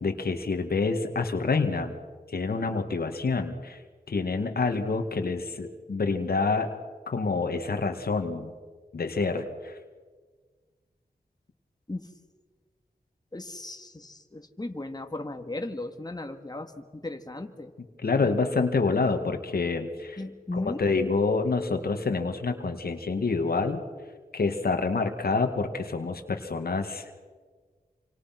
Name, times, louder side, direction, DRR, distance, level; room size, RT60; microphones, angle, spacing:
voice 1, 0.0-2.0 2.3-3.8 4.1-6.7 7.1-8.5 8.9-9.8 18.0-20.2 20.5-23.8 24.3-27.0, left 4 dB, 80° left, 6 dB, 2.3 m, -27 dB
voice 2, 13.3-17.7 18.2-18.3 20.2-20.9, left 2 dB, 25° left, 5 dB, 2.3 m, -36 dB
28.0 x 26.0 x 6.1 m, 1.5 s
wide cardioid pair, 55°, 16 cm